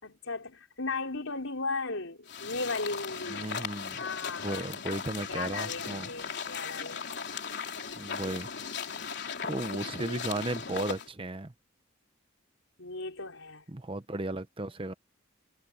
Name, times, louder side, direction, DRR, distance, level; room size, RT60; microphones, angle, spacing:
voice 1, 0.0-3.5 4.0-4.6 5.3-7.1 8.2-8.3 9.5-10.2 12.8-13.6, left 3 dB, 70° left, 4.7 m, -36 dB
sound 1, 2.3-11.1, left 6 dB, 55° left, 3.6 m, -38 dB
voice 2, 3.3-4.0 4.4-6.1 8.0-8.5 9.1-11.5 13.7-14.9, right 2 dB, 25° right, 0.9 m, -35 dB
head